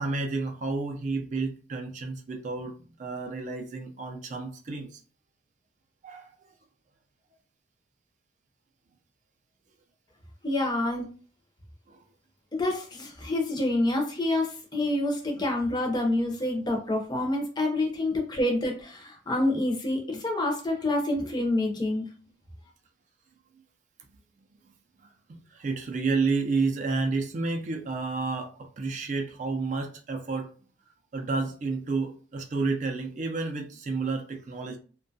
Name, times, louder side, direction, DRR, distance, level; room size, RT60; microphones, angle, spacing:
voice 1, 0.0-5.0 6.0-6.3 11.9-12.0 25.3-30.5 31.1-34.8, right 3 dB, 40° right, 0.3 m, -30 dB
voice 2, 10.4-11.1 12.5-22.0, left 1 dB, 20° left, 0.5 m, -27 dB
2.7 x 2.2 x 2.6 m
head